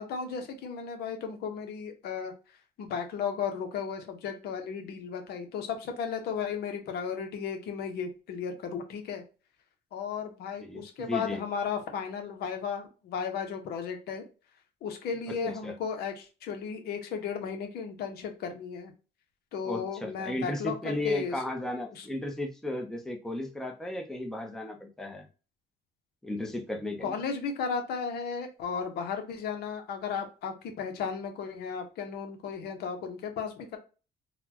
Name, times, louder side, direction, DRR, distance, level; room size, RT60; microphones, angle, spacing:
voice 1, 0.0-2.3 2.8-9.2 9.9-14.2 14.8-18.9 19.5-21.3 21.9-22.1 27.0-33.8, left 6 dB, 70° left, 5 dB, 0.9 m, -35 dB
voice 2, 10.6-11.4 15.3-15.8 19.6-25.3 26.2-27.2, left 1 dB, 5° left, 3 dB, 0.7 m, -35 dB
4.0 x 2.2 x 2.8 m, 0.33 s
cardioid pair, 110°, 17 cm